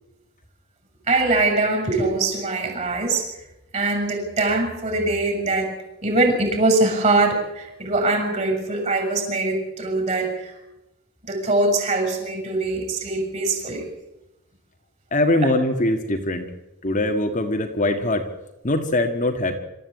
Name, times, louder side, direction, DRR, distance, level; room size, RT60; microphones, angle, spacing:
voice 1, 1.1-3.3 3.7-5.7 6.0-10.6 11.2-13.9, right 2 dB, 30° right, 3 dB, 6.7 m, -22 dB
voice 2, 15.1-16.5 16.8-18.3 18.6-19.6, left 1 dB, 35° left, 4 dB, 1.6 m, -22 dB
26.5 x 14.0 x 8.4 m, 0.98 s
head